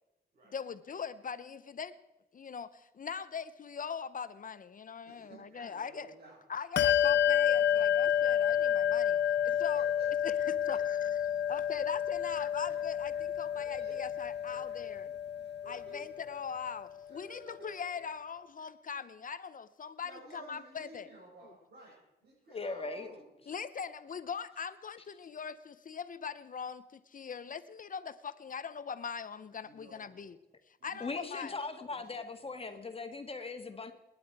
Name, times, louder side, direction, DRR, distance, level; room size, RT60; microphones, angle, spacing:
voice 1, 0.5-2.0 2.3-6.1 6.5-9.2 9.6-9.9 10.2-11.1 11.5-15.2 15.7-21.1 23.5-30.4 30.8-31.6, left 6 dB, 50° left, 14 dB, 0.7 m, -41 dB
voice 2, 5.0-6.4 9.4-10.4 10.7-10.8 11.3-11.8 12.4-12.5 13.1-13.2 13.5-14.2 14.5-14.9 15.4-16.1 17.1-17.7 18.6-18.7 20.0-23.2 29.6-30.3 30.8-31.5 31.9-32.7, right 2 dB, 65° right, -6 dB, 6.1 m, -54 dB
Bell, 6.8-16.7, left 9 dB, 85° left, 0.8 m, -30 dB
voice 3, 22.5-23.1 31.0-33.9, left 3 dB, 35° left, 7 dB, 1.8 m, -39 dB
27.5 x 10.5 x 4.7 m, 0.99 s
wide cardioid pair, 120°, 17 cm